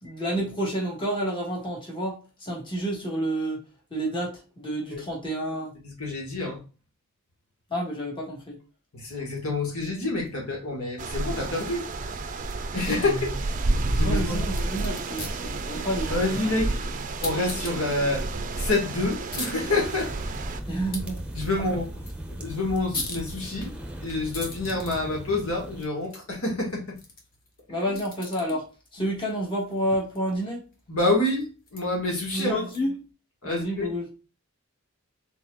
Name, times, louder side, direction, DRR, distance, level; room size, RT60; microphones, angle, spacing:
voice 1, 0.0-3.6 3.9-5.7 7.7-8.6 12.9-13.1 14.0-16.2 16.4-16.5 20.7-21.2 27.7-30.6 32.3-32.9 33.4-34.1, right 1 dB, 20° left, 1.6 m, -30 dB
voice 2, 5.8-6.6 8.9-11.9 12.7-13.3 13.9-14.5 15.8-16.7 17.2-20.2 21.3-21.9 22.3-23.7 24.0-27.0 29.0-29.1 30.9-32.6 33.4-34.0, left 2 dB, 80° left, 1.9 m, -28 dB
sound 1, 11.0-20.6, right 2 dB, 35° right, 0.5 m, -30 dB
sound 2, 14.4-33.1, left 2 dB, 40° left, 1.3 m, -43 dB
sound 3, 19.6-25.9, right 1 dB, 5° right, 0.9 m, -38 dB
4.4 x 4.1 x 2.4 m
head